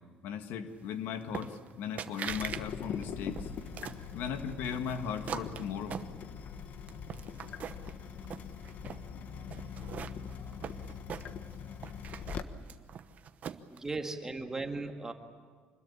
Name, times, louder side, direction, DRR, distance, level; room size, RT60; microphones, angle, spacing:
voice 1, 0.2-3.5 4.1-6.0, left 7 dB, 90° left, 7 dB, 1.8 m, -37 dB
sound 1, 1.3-1.7 2.0-2.6 3.0-4.1 4.6-6.5 6.9-7.9 8.2-9.0 9.5-11.5 11.8-13.8, right 8 dB, 45° right, 1.0 m, -41 dB
Water tap faucet / Drip, 2.3-12.4, left 7 dB, 55° left, 1.4 m, -42 dB
voice 2, 13.7-15.1, right 3 dB, 15° right, 4 dB, 1.9 m, -37 dB
26.0 x 21.0 x 8.7 m, 1.5 s
cardioid pair, 145°, 4 cm